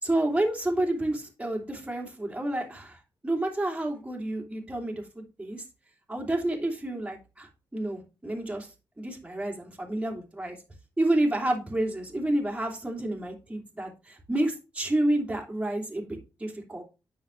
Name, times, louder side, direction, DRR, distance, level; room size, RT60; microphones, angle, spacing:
voice 1, 0.0-5.6 6.1-8.7 9.0-10.6 11.0-16.1 16.4-16.8, right 1 dB, 15° right, 1 dB, 2.9 m, -29 dB
9.6 x 6.7 x 3.2 m, 0.29 s
cardioid pair, 110°, 9 cm